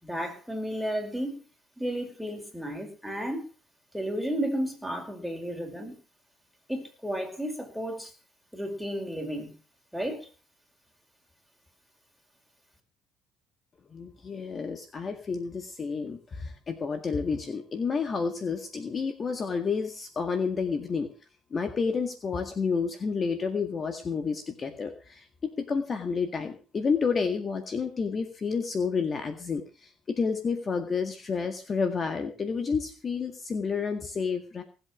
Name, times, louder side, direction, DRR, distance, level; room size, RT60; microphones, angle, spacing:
voice 1, 0.0-1.4 1.8-3.4 3.9-6.0 6.7-8.1 8.5-9.5 9.9-10.3, equal, ahead, 3 dB, 5.6 m, -33 dB
voice 2, 13.9-21.1 21.5-34.6, left 5 dB, 35° left, 8 dB, 1.9 m, -30 dB
18.5 x 8.3 x 6.2 m, 0.36 s
cardioid pair, 90°, 0 cm